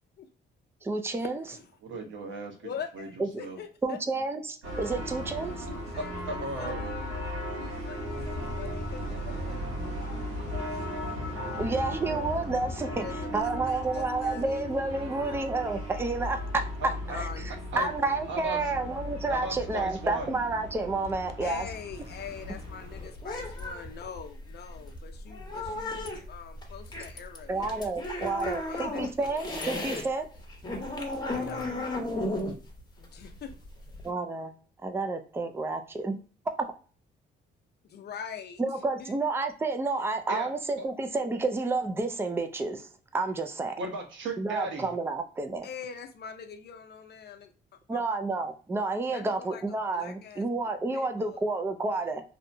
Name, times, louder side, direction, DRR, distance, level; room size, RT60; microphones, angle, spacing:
voice 1, 0.8-1.4 3.2-3.3 3.8-5.7 11.6-13.0 13.3-21.6 27.5-30.3 34.0-34.5 34.8-36.2 38.6-43.8 44.4-45.7 47.9-52.2, right 3 dB, 10° right, 0.4 m, -30 dB
voice 2, 1.8-2.5 2.9-3.1 3.4-3.6 6.0-6.9 17.1-17.2 17.7-17.8 18.3-18.6 19.3-20.4 31.3-31.8 40.3-40.5 40.8-40.9 43.8-44.9, right 2 dB, 70° right, 1.0 m, -36 dB
voice 3, 2.5-4.0 5.6-7.2 7.6-10.9 11.5-11.6 12.8-14.7 15.0-15.6 17.1-18.2 21.4-29.5 31.2-31.7 33.0-33.5 37.8-39.2 45.6-47.5 47.9-48.0 49.1-50.5 50.9-51.4, left 7 dB, 55° left, 0.6 m, -44 dB
sound 1, 4.6-23.0, equal, 85° right, 1.3 m, -36 dB
sound 2, 8.4-13.4, right 2 dB, 40° right, 1.0 m, -50 dB
sound 3, 21.9-30.0 30.4-34.1, left 1 dB, 20° left, 0.9 m, -35 dB
2.8 x 2.0 x 2.6 m
cardioid pair, 90°, 20 cm